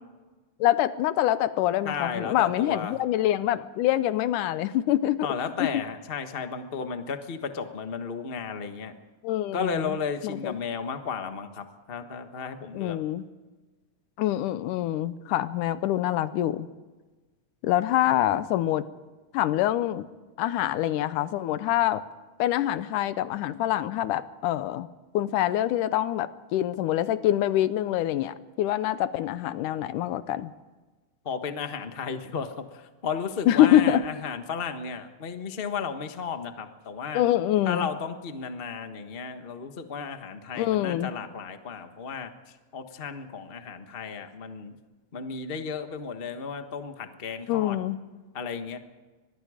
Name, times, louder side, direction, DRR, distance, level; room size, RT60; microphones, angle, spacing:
voice 1, 0.6-5.3 5.6-5.8 9.2-10.0 10.2-10.6 12.7-13.2 14.2-16.7 17.6-18.9 19.3-20.1 20.4-22.0 22.4-24.9 25.1-30.5 33.5-34.0 37.1-37.9 40.6-41.1 47.5-48.0, left 13 dB, 85° left, 14 dB, 2.3 m, -25 dB
voice 2, 1.8-2.9 5.2-8.9 9.5-13.0 31.2-37.2 37.7-42.3 42.7-44.7 45.1-47.8 48.3-48.8, left 6 dB, 70° left, 7 dB, 0.5 m, -34 dB
24.5 x 21.0 x 5.0 m, 1.3 s
omnidirectional pair, 3.5 m